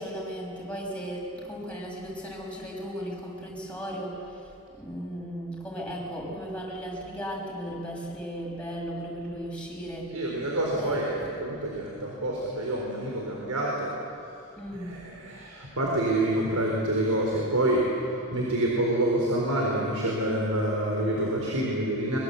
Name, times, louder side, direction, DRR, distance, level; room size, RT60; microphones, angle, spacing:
voice 1, 0.0-10.1 10.8-11.3 14.6-15.0, equal, 5° left, -3 dB, 5.9 m, -36 dB
voice 2, 10.1-14.0 14.8-22.2, right 1 dB, 85° right, -2 dB, 4.0 m, -27 dB
24.0 x 23.0 x 8.1 m, 2.6 s
head